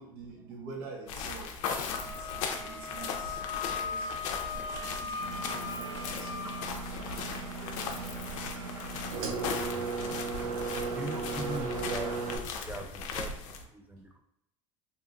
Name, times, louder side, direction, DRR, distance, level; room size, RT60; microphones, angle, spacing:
voice 1, 0.0-6.6 7.2-8.4, right 4 dB, 60° right, -1 dB, 0.9 m, -47 dB
sound 1, 1.1-13.6, left 5 dB, 75° left, 0.5 m, -38 dB
Wind instrument woodwind instrument, 1.9-6.7, left 4 dB, 30° left, 0.8 m, -38 dB
Engine, 5.2-12.4, right 4 dB, 85° right, 0.4 m, -36 dB
voice 2, 9.5-10.2 10.7-14.2, right 1 dB, 10° right, 3 dB, 0.4 m, -41 dB
2.7 x 2.5 x 2.5 m, 0.78 s
hypercardioid pair, 80°, 17 cm